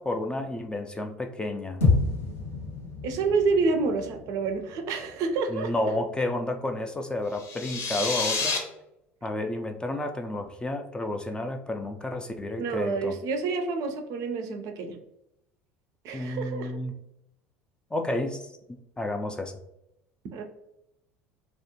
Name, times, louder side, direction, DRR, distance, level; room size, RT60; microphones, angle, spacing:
voice 1, 0.0-1.8 5.5-8.6 9.2-13.1 16.1-17.0 17.9-18.5 19.0-19.5, left 1 dB, 10° left, 5 dB, 0.3 m, -31 dB
sound 1, 1.8-6.2, left 3 dB, 85° left, 0.7 m, -29 dB
voice 2, 3.0-5.7 12.6-15.0 16.0-16.8 20.3-20.4, right 4 dB, 55° right, 5 dB, 0.4 m, -28 dB
sound 2, 7.3-8.6, left 4 dB, 45° left, 0.7 m, -29 dB
2.4 x 2.1 x 2.8 m, 0.83 s
hypercardioid pair, 70°, 7 cm